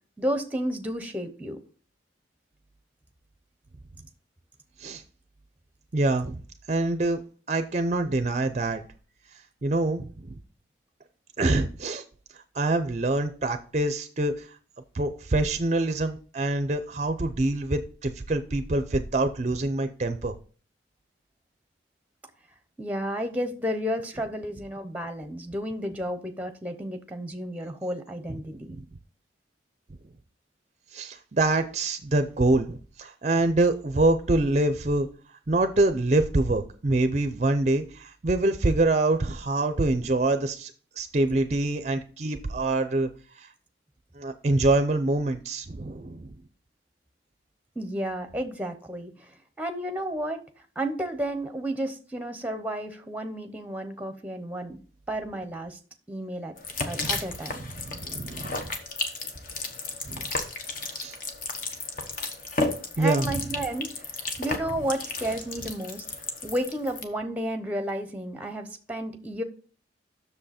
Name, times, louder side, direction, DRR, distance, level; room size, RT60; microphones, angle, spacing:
voice 1, 0.2-1.6 22.8-28.8 47.8-49.3 49.6-50.4 50.8-54.8 55.1-55.8 56.1-56.5 56.9-57.6 63.0-63.9 64.4-66.0 66.4-69.4, right 1 dB, 10° right, 0.8 m, -32 dB
voice 2, 5.9-6.4 6.7-7.2 7.5-8.8 9.6-10.4 11.4-12.0 12.5-14.5 14.9-20.3 28.3-28.8 30.9-35.1 35.5-40.7 41.0-43.1 43.4-43.5 44.2-46.4 57.0-57.2 57.7-58.6 60.0-60.3 61.0-61.2 63.0-63.4, right 2 dB, 35° right, 0.5 m, -25 dB
sound 1, 56.6-67.0, left 3 dB, 45° left, 1.1 m, -33 dB
7.7 x 6.6 x 4.2 m
head